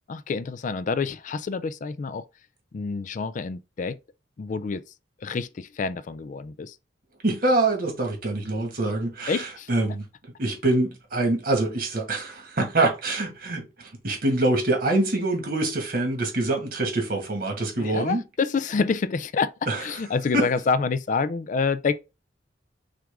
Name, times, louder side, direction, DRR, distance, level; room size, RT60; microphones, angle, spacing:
voice 1, 0.1-2.3 2.7-4.0 4.4-4.8 5.2-6.8 9.3-9.7 17.8-19.5 19.8-21.9, left 4 dB, 45° left, 0.4 m, -27 dB
voice 2, 7.2-9.4 9.7-10.0 10.4-18.2 19.7-19.8 20.3-20.4, right 2 dB, 55° right, 1.7 m, -25 dB
6.0 x 2.5 x 3.6 m
head